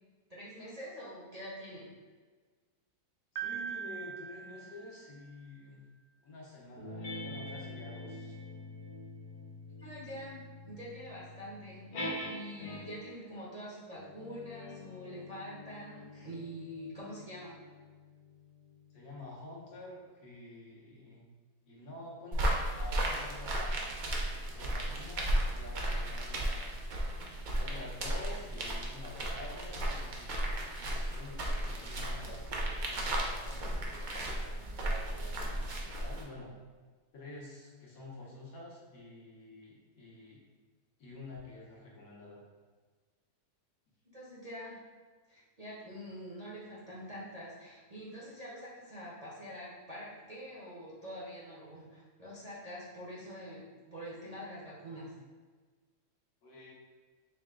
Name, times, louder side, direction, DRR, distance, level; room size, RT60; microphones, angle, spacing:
voice 1, 0.3-1.9 9.8-11.8 12.2-17.6 44.1-44.8 45.3-55.1, equal, 35° right, -8 dB, 0.6 m, -45 dB
voice 2, 3.3-5.8 6.2-8.4 18.9-21.3 21.7-22.5 22.8-24.1 24.4-26.8 27.6-36.5 37.1-40.4 41.0-42.4 56.4-56.7, left 2 dB, 70° left, -5 dB, 1.5 m, -49 dB
Piano, 3.4-5.4, right 7 dB, 70° right, 0.9 m, -41 dB
sound 1, 6.8-13.2 13.9-18.8, left 1 dB, 55° left, 1.2 m, -45 dB
sound 2, 22.3-36.2, right 1 dB, 90° right, 0.4 m, -34 dB
5.0 x 2.2 x 3.6 m, 1.4 s
omnidirectional pair, 1.7 m